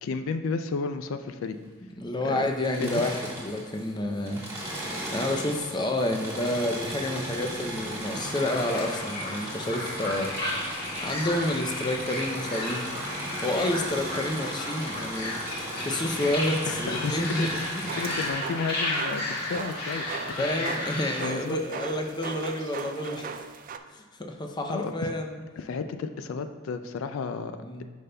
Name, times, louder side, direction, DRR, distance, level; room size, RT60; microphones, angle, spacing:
voice 1, 0.0-1.6 2.2-2.5 2.8-3.0 16.7-20.1 20.4-20.7 21.2-21.6 24.7-25.1 25.6-27.5, left 4 dB, 80° left, 9 dB, 0.4 m, -33 dB
voice 2, 2.0-4.4 5.1-10.3 11.0-12.9 13.4-15.3 15.7-17.5 17.8-17.9 20.4-23.3 23.9-25.4 27.6-27.9, left 1 dB, 20° left, 4 dB, 0.5 m, -29 dB
Engine / Mechanisms, 2.5-3.9 4.2-18.3, right 1 dB, 15° right, 1.7 m, -37 dB
sound 1, 7.9-21.2, left 1 dB, 50° left, 1.7 m, -33 dB
sound 2, 17.9-23.8, right 5 dB, 40° right, 0.3 m, -39 dB
10.5 x 5.1 x 2.2 m, 1.5 s
head